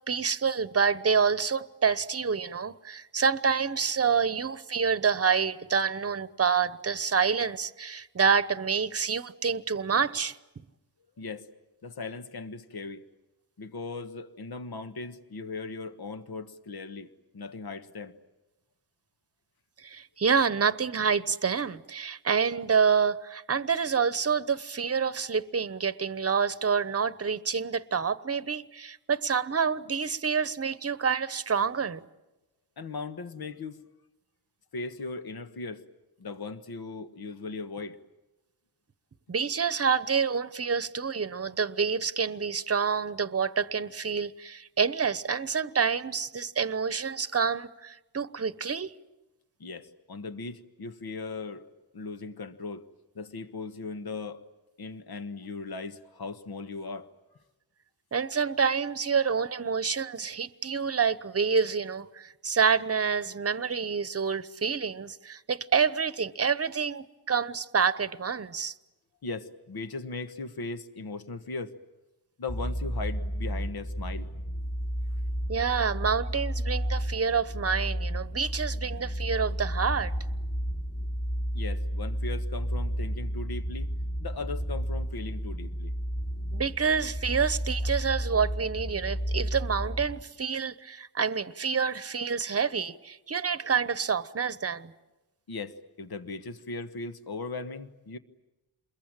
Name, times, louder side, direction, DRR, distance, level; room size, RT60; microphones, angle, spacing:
voice 1, 0.0-10.4 19.8-32.0 39.3-48.9 58.1-68.8 75.5-80.1 86.5-94.9, right 6 dB, 35° right, 1.0 m, -27 dB
voice 2, 11.2-11.5 11.8-13.1 13.6-18.1 32.8-33.8 34.7-35.9 36.2-38.0 49.6-51.7 51.9-52.8 53.1-54.4 54.8-57.1 69.2-71.8 72.4-74.3 81.5-83.9 84.2-85.9 95.5-98.2, left 3 dB, 60° left, 1.5 m, -38 dB
sound 1, 72.5-90.2, equal, 40° left, 3.6 m, -32 dB
28.5 x 22.0 x 8.9 m
cardioid pair, 75°, 41 cm